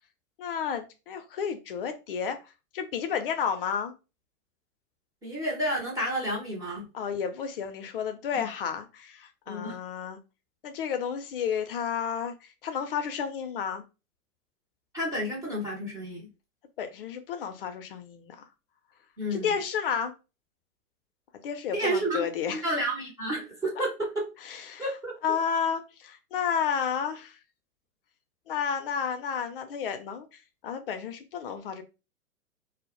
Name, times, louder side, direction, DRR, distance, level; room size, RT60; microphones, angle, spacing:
voice 1, 0.4-2.4 2.7-3.9 6.9-10.2 10.6-12.3 12.6-13.8 16.8-18.4 19.3-20.1 21.4-22.6 24.4-24.8 25.2-27.4 28.5-31.8, left 7 dB, 40° left, 0.5 m, -31 dB
voice 2, 5.2-6.9 8.3-8.5 9.5-9.8 14.9-16.3 19.2-19.5 21.7-24.2 24.8-25.4, right 1 dB, 10° right, 0.5 m, -31 dB
2.1 x 2.0 x 2.9 m
figure-of-eight pair, 110°, 43 cm